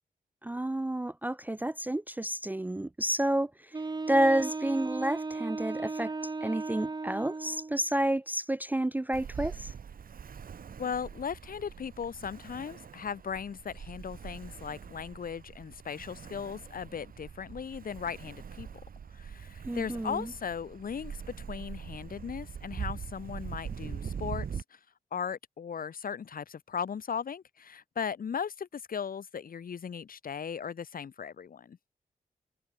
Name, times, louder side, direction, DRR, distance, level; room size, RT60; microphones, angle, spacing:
voice 1, 0.4-3.5 4.1-6.1 6.4-9.7 19.6-20.3, right 1 dB, 10° right, 0.4 m, -30 dB
Wind instrument woodwind instrument, 3.7-7.8, right 3 dB, 25° right, 1.4 m, -36 dB
Ocean, 9.1-24.6, right 7 dB, 70° right, 3.4 m, -43 dB
voice 2, 10.8-18.7 19.1-24.8 25.1-31.8, left 7 dB, 70° left, 2.8 m, -37 dB
wide cardioid pair, 110°, 15 cm